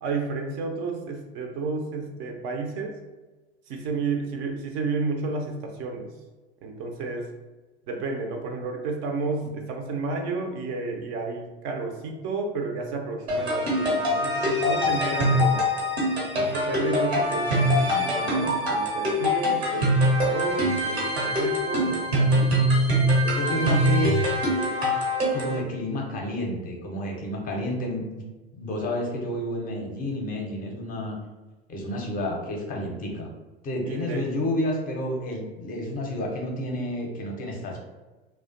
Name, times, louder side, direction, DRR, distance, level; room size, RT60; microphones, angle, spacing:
voice 1, 0.0-3.0 3.7-6.1 6.6-7.3 7.9-15.7 16.3-22.6 23.2-24.1 33.9-34.3, right 3 dB, 45° right, 3 dB, 0.4 m, -31 dB
sound 1, 13.3-25.6, equal, 90° right, 0.9 m, -23 dB
voice 2, 23.4-24.1 25.3-28.2 28.5-31.1 31.7-33.3 33.6-37.8, left 1 dB, 30° left, 0 dB, 0.5 m, -30 dB
2.4 x 2.1 x 2.4 m, 1.2 s
figure-of-eight pair, 80°, 31 cm